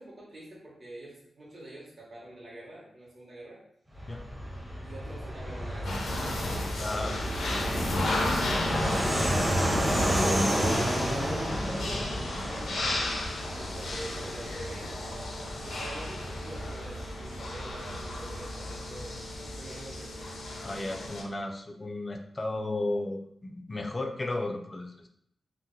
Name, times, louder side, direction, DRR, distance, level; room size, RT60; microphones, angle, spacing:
voice 1, 0.0-3.6 4.8-7.2 7.9-13.1 13.5-14.9 15.6-20.3, right 1 dB, 45° right, -6 dB, 0.9 m, -46 dB
Fixed-wing aircraft airplane, 3.9-20.1, equal, 10° right, 0.7 m, -31 dB
sound 1, 5.8-21.2, left 2 dB, 90° left, 0.6 m, -35 dB
voice 2, 6.8-7.2 11.8-12.3 20.6-25.1, left 2 dB, 30° left, 3 dB, 0.4 m, -34 dB
2.8 x 2.0 x 3.6 m, 0.70 s
wide cardioid pair, 120°, 0 cm